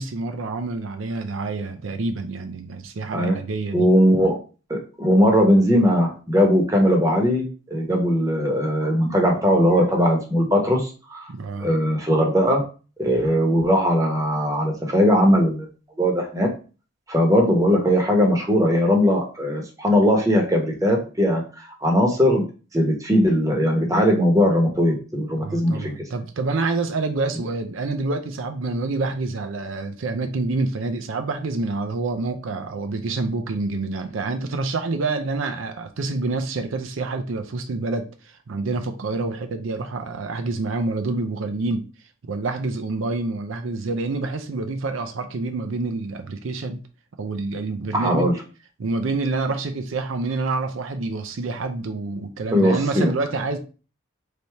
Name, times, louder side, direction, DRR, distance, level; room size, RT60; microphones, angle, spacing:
voice 1, 0.0-3.9 11.3-11.7 25.4-41.9 42.2-46.8 47.2-48.3 48.8-53.6, right 3 dB, 80° right, 0.5 m, -27 dB
voice 2, 3.7-4.3 4.7-11.3 11.6-12.6 13.0-15.7 16.0-16.5 17.1-22.4 22.7-25.9 47.9-48.3 52.5-53.1, equal, 15° right, 0.9 m, -19 dB
3.3 x 2.7 x 4.3 m
head